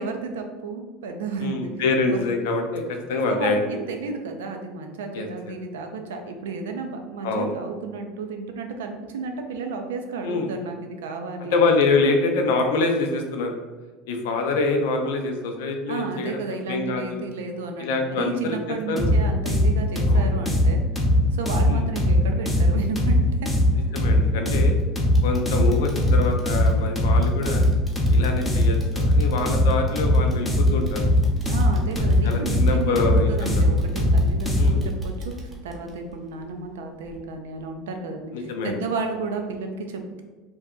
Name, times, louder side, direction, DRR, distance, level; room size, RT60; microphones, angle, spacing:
voice 1, 0.0-1.7 2.1-2.3 3.3-11.7 15.9-21.0 21.3-23.5 31.4-40.2, right 4 dB, 90° right, 4 dB, 0.4 m, -32 dB
voice 2, 1.4-3.6 5.1-5.3 7.2-7.5 10.2-10.5 11.5-13.5 14.1-16.4 16.7-17.3 17.8-18.6 18.9-19.2 20.1-20.3 21.7-21.9 23.9-24.7 25.2-27.7 28.1-31.0 32.2-33.7 34.6-34.8 38.3-38.8, left 3 dB, 80° left, 4 dB, 0.4 m, -25 dB
sound 1, 19.0-34.9, left 1 dB, 10° left, 0.6 m, -20 dB
sound 2, 24.5-24.8 25.1-36.7 37.0-37.2 37.7-37.8, right 1 dB, 15° right, 0.8 m, -37 dB
2.6 x 2.2 x 3.6 m, 1.3 s
supercardioid pair, 105°, 0 cm